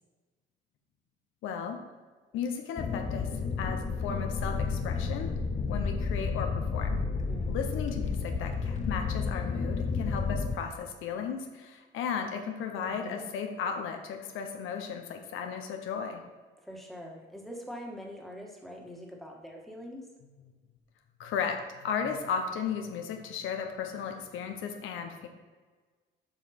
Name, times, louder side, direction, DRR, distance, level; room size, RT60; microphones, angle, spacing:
voice 1, 1.4-1.8 2.3-3.3 3.6-5.3 5.7-7.0 7.5-16.2 21.2-25.3, left 6 dB, 90° left, 4 dB, 0.8 m, -35 dB
sound 1, 2.8-10.6, left 4 dB, 40° left, 0.8 m, -31 dB
voice 2, 7.2-7.6 12.8-13.2 16.6-20.0, equal, ahead, -1 dB, 1.6 m, -44 dB
7.7 x 5.0 x 4.3 m, 1.4 s
cardioid pair, 90°, 20 cm